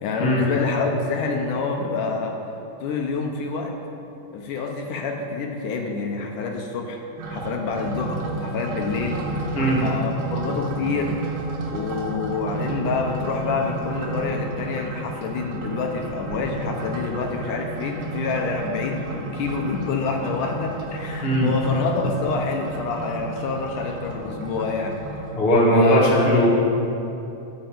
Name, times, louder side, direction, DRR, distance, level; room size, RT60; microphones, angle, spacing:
voice 1, 0.0-2.3 2.8-3.7 4.3-7.0 7.3-9.2 9.8-11.2 11.7-25.1 25.7-26.5, left 4 dB, 75° left, 2 dB, 2.4 m, -27 dB
sound 1, 7.2-25.3, right 2 dB, 55° right, 1.9 m, -32 dB
voice 2, 25.3-26.5, equal, 25° left, -4 dB, 1.5 m, -18 dB
15.5 x 5.8 x 7.4 m, 2.8 s
omnidirectional pair, 3.9 m